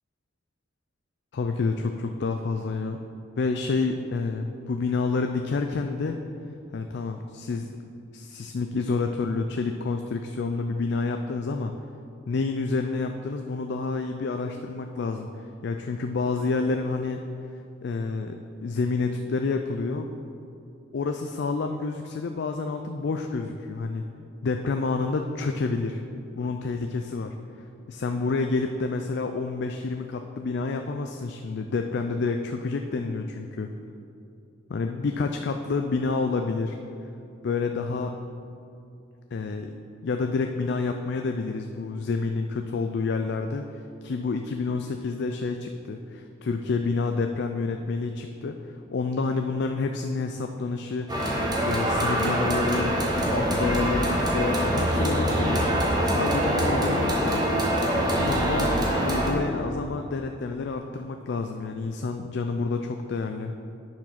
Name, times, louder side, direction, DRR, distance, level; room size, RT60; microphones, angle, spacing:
voice 1, 1.3-3.0 3.4-6.2 6.7-7.7 8.1-11.7 12.3-15.3 15.6-17.3 17.8-20.1 20.9-24.0 24.4-26.0 26.4-27.3 27.9-33.7 34.7-36.8 37.4-38.2 39.3-43.6 44.0-51.3 51.7-53.0 53.3-55.7 56.0-57.6 58.2-62.8 63.1-63.5, left 4 dB, 60° left, 5 dB, 0.4 m, -29 dB
sound 1, 51.1-59.3, equal, 20° right, 1.1 m, -24 dB
9.5 x 4.7 x 5.8 m, 2.6 s
head